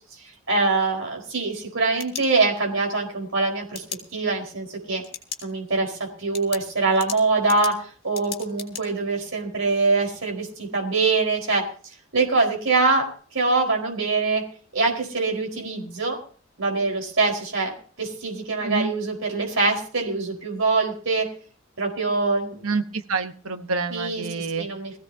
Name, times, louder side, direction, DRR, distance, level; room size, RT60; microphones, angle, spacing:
voice 1, 0.5-3.8 4.1-5.0 5.4-11.7 12.1-13.1 13.3-14.4 14.7-16.2 16.6-17.7 18.0-21.3 21.8-22.6 23.9-24.9, right 3 dB, 65° right, 1 dB, 4.6 m, -24 dB
sound 1, 1.8-2.8 3.7-4.0 5.0-5.5 5.8-5.9 6.3-8.8, left 7 dB, 30° left, 2.8 m, -36 dB
voice 2, 22.6-24.7, right 4 dB, 85° right, 8 dB, 1.1 m, -27 dB
22.0 x 15.5 x 2.8 m, 0.42 s
head